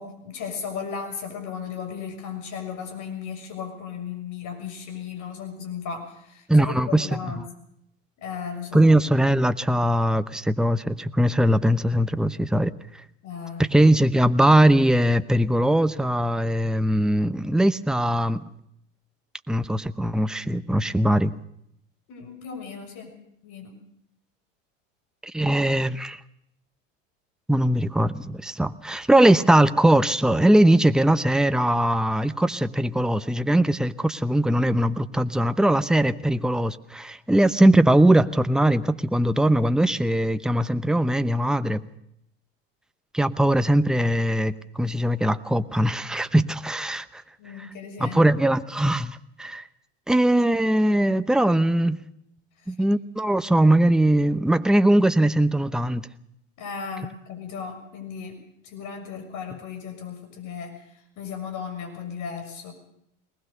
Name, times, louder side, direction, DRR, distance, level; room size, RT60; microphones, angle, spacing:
voice 1, 0.0-7.4 8.2-8.9 13.2-13.6 22.1-23.1 23.4-23.8 47.4-48.2 56.6-58.4 58.6-60.8 61.2-62.7, left 6 dB, 50° left, 6.6 m, -35 dB
voice 2, 6.5-7.1 8.7-12.7 13.6-18.4 19.5-21.3 25.2-26.2 27.5-41.8 43.1-47.2 48.0-49.7 50.1-52.0 52.7-56.1, right 1 dB, ahead, 0.9 m, -20 dB
22.0 x 19.5 x 6.7 m
hypercardioid pair, 90°, 37 cm